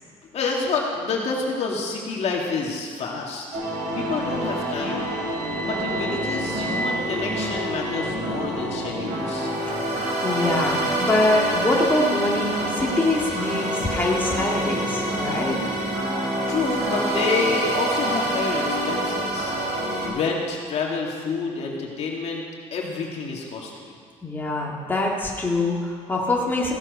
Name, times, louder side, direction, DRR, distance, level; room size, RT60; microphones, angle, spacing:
voice 1, 0.3-5.2 5.7-9.5 16.5-19.6 20.1-22.4 22.7-23.9, left 4 dB, 55° left, -1 dB, 2.2 m, -28 dB
sound 1, 3.5-20.1, right 1 dB, 65° right, 3.9 m, -26 dB
voice 2, 9.7-15.6 24.2-26.7, left 2 dB, 15° left, -2 dB, 1.9 m, -24 dB
15.5 x 7.6 x 5.4 m, 2.1 s
cardioid pair, 105°, 13 cm